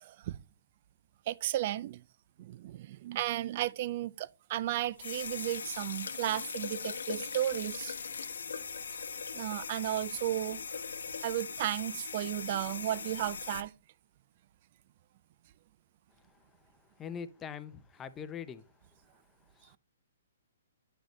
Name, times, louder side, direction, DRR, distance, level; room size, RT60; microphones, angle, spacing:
voice 1, 0.0-0.4 1.3-2.0 2.4-7.9 9.3-10.6 11.2-13.7, right 13 dB, 45° right, 0.4 m, -34 dB
sound 1, 5.0-13.6, left 5 dB, 80° left, 1.0 m, -40 dB
voice 2, 17.0-18.6 19.6-19.8, left 7 dB, 15° left, 0.7 m, -42 dB
10.0 x 5.1 x 3.1 m
hypercardioid pair, 140°, 0 cm